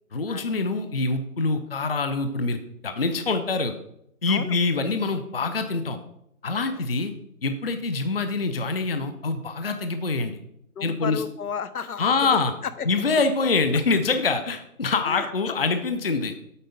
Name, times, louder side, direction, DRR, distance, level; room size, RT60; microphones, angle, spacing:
voice 1, 0.1-3.7 4.2-6.0 6.4-7.1 7.4-10.4 10.8-11.2 12.0-12.5 12.9-16.3, left 3 dB, 45° left, 8 dB, 0.5 m, -25 dB
voice 2, 10.8-12.9 15.0-15.3, left 6 dB, 80° left, 14 dB, 0.8 m, -33 dB
8.2 x 4.3 x 5.2 m, 0.77 s
hypercardioid pair, 170°, 43 cm